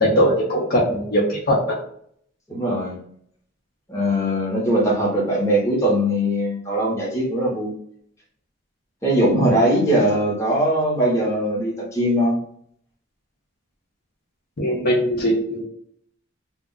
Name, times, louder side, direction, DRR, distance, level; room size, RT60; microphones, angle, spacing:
voice 1, 0.0-1.8 9.4-9.5 14.6-15.6, equal, 50° left, -3 dB, 0.7 m, -20 dB
voice 2, 2.5-3.0 3.9-7.7 9.0-12.4, equal, 15° left, -4 dB, 0.8 m, -20 dB
2.3 x 2.1 x 3.7 m, 0.65 s
head